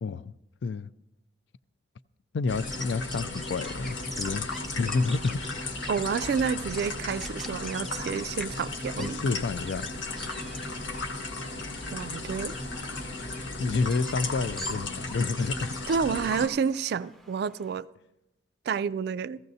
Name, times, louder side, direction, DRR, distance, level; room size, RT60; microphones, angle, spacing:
voice 1, 0.0-0.3 0.6-0.9 2.3-4.5 4.7-5.4 9.0-9.9 13.6-15.7, left 4 dB, 65° left, 0.4 m, -29 dB
sound 1, 2.5-16.5, left 2 dB, 85° left, 1.4 m, -35 dB
Bird vocalization bird call bird song, 2.6-17.8, equal, ahead, 0.6 m, -45 dB
voice 2, 5.9-9.2 10.3-10.5 11.9-12.5 15.9-17.9 18.7-19.4, right 6 dB, 60° right, 0.3 m, -29 dB
15.5 x 15.0 x 2.7 m
head